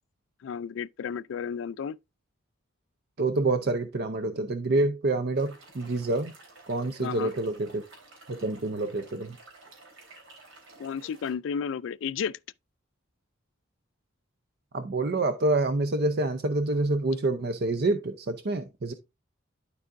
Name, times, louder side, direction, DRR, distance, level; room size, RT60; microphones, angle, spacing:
voice 1, 0.4-2.0 7.0-7.3 10.8-12.4, left 7 dB, 65° left, 0.3 m, -32 dB
voice 2, 3.2-6.3 6.7-7.8 8.3-9.4 14.7-18.9, right 2 dB, 50° right, 0.6 m, -27 dB
sound 1, 5.3-11.3, right 2 dB, 75° right, 3.7 m, -52 dB
12.0 x 4.7 x 2.5 m
head